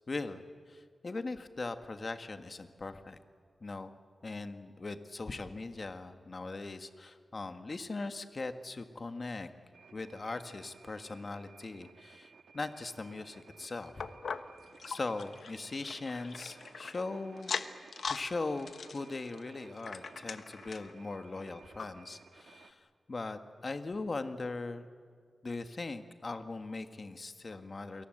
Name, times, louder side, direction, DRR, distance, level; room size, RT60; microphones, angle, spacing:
voice 1, 0.1-3.2 3.6-3.9 4.2-9.5 9.9-14.1 14.8-17.5 18.0-24.9 25.4-28.0, left 3 dB, 45° left, 8 dB, 1.7 m, -40 dB
sound 1, 9.7-22.7, right 5 dB, 90° right, 1.6 m, -57 dB
sound 2, 14.0-17.0 17.4-18.3 18.6-20.9 21.4-21.5 21.8-21.9 22.5-22.6, left 5 dB, 80° left, 1.2 m, -41 dB
30.0 x 22.5 x 8.0 m, 2.1 s
wide cardioid pair, 105°, 0 cm